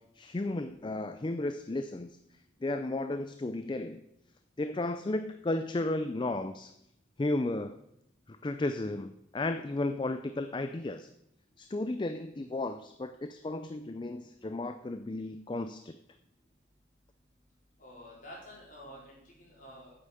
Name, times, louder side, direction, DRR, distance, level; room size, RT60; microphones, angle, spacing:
voice 1, 0.2-2.2 2.6-4.0 4.6-6.7 7.2-7.8 8.3-11.1 11.6-16.0, left 2 dB, 25° left, 9 dB, 0.4 m, -34 dB
voice 2, 17.8-19.9, equal, 45° left, -4 dB, 4.5 m, -49 dB
8.8 x 8.1 x 6.8 m, 0.80 s
head